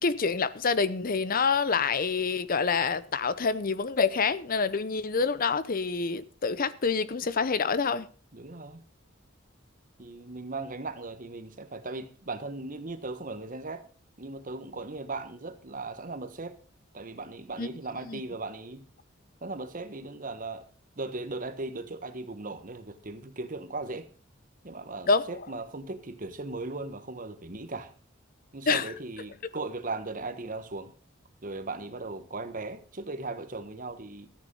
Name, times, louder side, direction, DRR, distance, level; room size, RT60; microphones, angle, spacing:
voice 1, 0.0-8.1 17.6-17.8 18.1-18.2 25.1-25.2 28.7-28.9, left 5 dB, 45° left, 0.7 m, -27 dB
voice 2, 8.3-8.8 10.0-13.8 14.2-16.6 16.9-18.8 19.4-20.7 21.0-24.1 24.6-27.9 28.5-30.9 31.4-34.3, right 3 dB, 45° right, 1.3 m, -38 dB
14.0 x 9.3 x 5.4 m
head